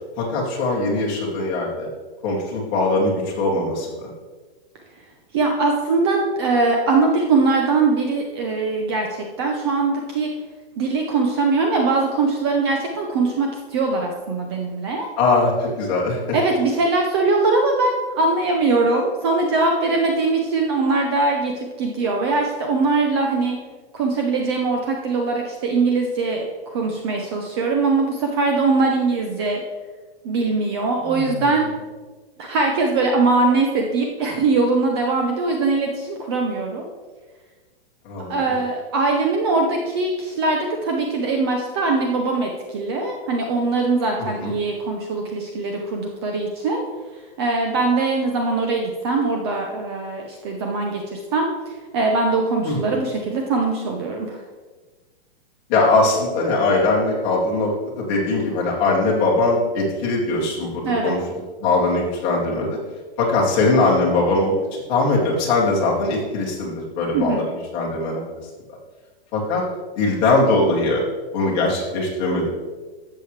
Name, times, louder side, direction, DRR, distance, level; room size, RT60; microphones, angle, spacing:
voice 1, 0.2-1.9 2.2-4.1 15.2-16.4 31.0-31.5 38.0-38.6 44.2-44.5 52.6-52.8 55.7-62.8 63.2-68.2 69.3-69.6 70.0-71.0 71.3-72.5, left 2 dB, 25° left, -4 dB, 2.4 m, -21 dB
voice 2, 5.3-10.3 10.8-15.1 16.3-23.6 23.9-29.6 30.2-31.7 32.4-36.9 38.3-46.8 47.4-51.5 51.9-54.4 60.8-61.1 67.1-67.4, right 3 dB, 25° right, 2 dB, 0.7 m, -21 dB
13.0 x 7.6 x 3.3 m, 1.3 s
hypercardioid pair, 175°, 31 cm